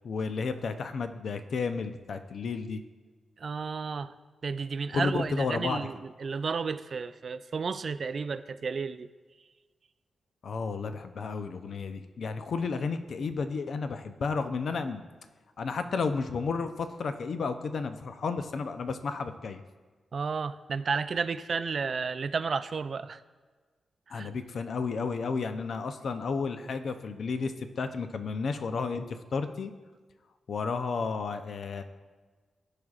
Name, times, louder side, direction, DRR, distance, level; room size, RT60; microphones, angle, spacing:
voice 1, 0.0-2.8 4.9-5.9 10.4-15.0 15.6-19.6 24.1-29.7 30.5-31.8, left 4 dB, 70° left, 9 dB, 0.5 m, -32 dB
voice 2, 3.4-4.1 4.4-9.1 20.1-23.2 24.1-24.3, right 5 dB, 60° right, 13 dB, 0.3 m, -32 dB
14.5 x 4.9 x 2.4 m, 1.4 s
cardioid pair, 70°, 0 cm